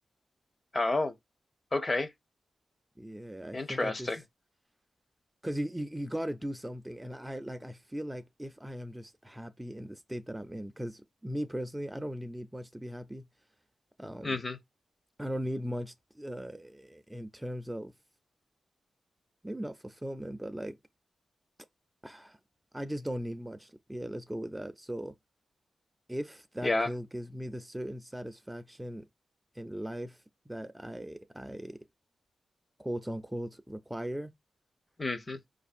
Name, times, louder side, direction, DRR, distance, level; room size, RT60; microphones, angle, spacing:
voice 1, 0.7-1.1 1.7-2.1 3.5-4.2 14.2-14.6 26.6-26.9 35.0-35.4, left 2 dB, 35° left, 0.7 m, -30 dB
voice 2, 3.0-4.1 5.4-13.2 14.0-14.4 15.2-17.9 19.4-20.8 22.0-22.4 22.7-25.1 26.1-29.0 29.6-30.2 30.5-31.8 32.8-34.3, equal, 10° right, 0.4 m, -38 dB
5.0 x 2.6 x 2.4 m
cardioid pair, 75°, 0 cm